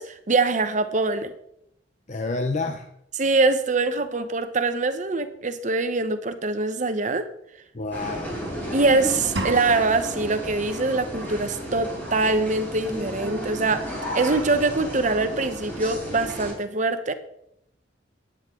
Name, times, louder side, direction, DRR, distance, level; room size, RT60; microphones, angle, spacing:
voice 1, 0.0-1.3 3.2-7.3 8.7-13.9 14.1-17.1, right 3 dB, 40° right, 1.0 m, -23 dB
voice 2, 2.1-2.9 7.7-8.5, left 3 dB, 40° left, 0.8 m, -29 dB
sound 1, 7.9-16.5, equal, 10° left, 4.0 m, -33 dB
sound 2, 9.4-10.3, right 2 dB, 65° right, 1.5 m, -31 dB
13.5 x 10.0 x 3.8 m
head